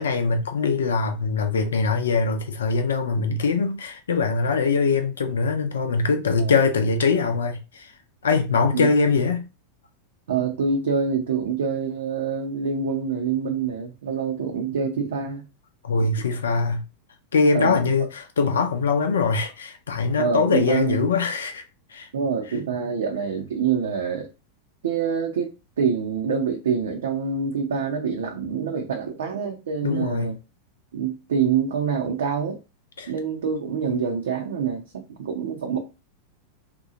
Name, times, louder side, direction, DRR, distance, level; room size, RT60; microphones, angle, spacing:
voice 1, 0.0-7.9 8.2-9.4 15.8-16.8 17.3-21.6 21.9-22.1 29.8-30.3 33.0-33.1, left 4 dB, 65° left, 0.6 m, -22 dB
voice 2, 10.3-15.4 16.0-16.1 17.5-18.1 20.2-21.0 22.1-24.3 24.8-30.3 30.9-32.6 33.1-35.8, right 6 dB, 65° right, 0.6 m, -26 dB
2.9 x 2.3 x 3.7 m
figure-of-eight pair, 90°, 0 cm